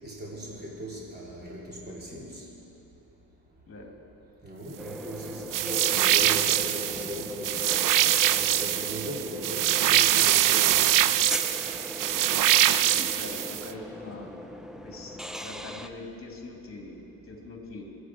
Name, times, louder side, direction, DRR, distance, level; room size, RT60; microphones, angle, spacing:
voice 1, 0.0-2.4 4.4-7.6 8.4-10.9, equal, 25° right, -5 dB, 3.6 m, -38 dB
sound 1, 4.8-15.9, left 1 dB, ahead, 0.5 m, -39 dB
sound 2, 5.5-13.7, right 12 dB, 50° right, 0.5 m, -23 dB
voice 2, 12.9-14.3 14.8-17.8, left 2 dB, 30° left, 0 dB, 3.5 m, -43 dB
23.0 x 8.8 x 4.9 m, 2.9 s
cardioid pair, 90°, 42 cm